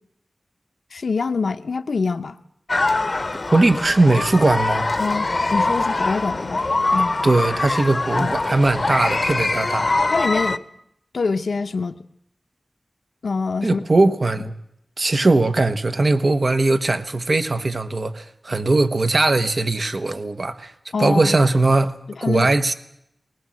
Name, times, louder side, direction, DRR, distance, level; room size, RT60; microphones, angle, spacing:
voice 1, 0.9-2.3 5.0-7.2 8.2-8.4 10.1-10.6 11.1-12.0 13.2-13.8 20.9-21.4 22.2-22.7, left 4 dB, 90° left, 0.8 m, -25 dB
sound 1, 2.7-10.6, left 2 dB, 55° left, 0.7 m, -23 dB
voice 2, 3.5-4.9 7.2-9.9 13.6-14.5 15.0-20.7 21.0-22.7, right 2 dB, 60° right, 1.2 m, -19 dB
20.0 x 19.5 x 7.6 m
cardioid pair, 45°, 0 cm